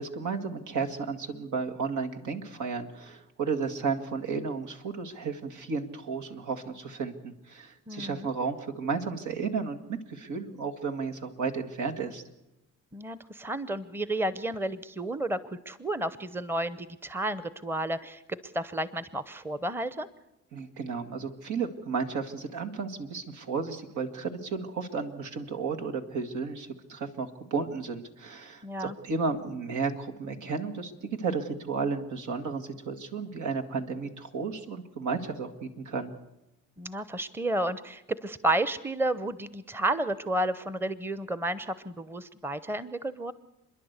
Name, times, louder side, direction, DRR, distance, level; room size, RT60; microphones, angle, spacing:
voice 1, 0.0-12.2 20.5-36.1, right 5 dB, 75° right, 4 dB, 2.0 m, -33 dB
voice 2, 7.9-8.3 12.9-15.4 15.7-20.1 28.6-28.9 36.8-43.3, right 1 dB, 5° right, 15 dB, 0.8 m, -31 dB
29.5 x 11.0 x 8.2 m, 0.92 s
cardioid pair, 90°, 30 cm